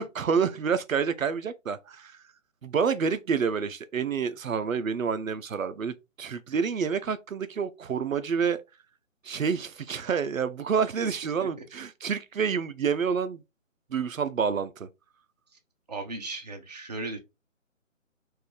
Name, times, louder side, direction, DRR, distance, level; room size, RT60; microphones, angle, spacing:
voice 1, 0.0-2.2 2.6-8.6 9.2-13.4 13.9-14.9, right 6 dB, 85° right, 0.6 m, -28 dB
voice 2, 15.9-17.2, right 3 dB, 30° right, 0.7 m, -36 dB
3.9 x 2.5 x 3.0 m
figure-of-eight pair, 155°, 40 cm